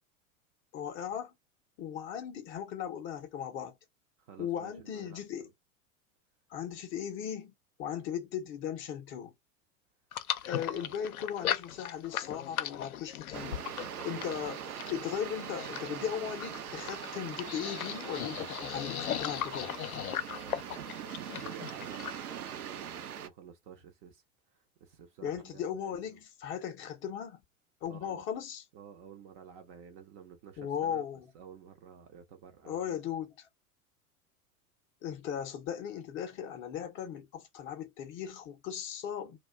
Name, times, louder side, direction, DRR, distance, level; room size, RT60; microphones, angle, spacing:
voice 1, 0.7-1.3 1.8-3.8 4.4-5.5 6.5-7.5 7.8-9.3 10.5-13.6 14.0-19.7 25.2-27.4 27.8-28.6 30.6-31.3 32.7-33.5 35.0-39.4, left 9 dB, 30° left, 0.5 m, -37 dB
voice 2, 4.2-5.5 10.6-11.1 20.2-24.2 24.5-26.2 27.9-28.3 28.7-31.0 31.3-32.9, right 8 dB, 30° right, 0.4 m, -51 dB
sound 1, 10.1-22.2, left 11 dB, 75° left, 0.5 m, -38 dB
sound 2, 13.3-23.3, right 9 dB, 75° right, 0.6 m, -42 dB
2.3 x 2.1 x 3.3 m
figure-of-eight pair, 90°, 44 cm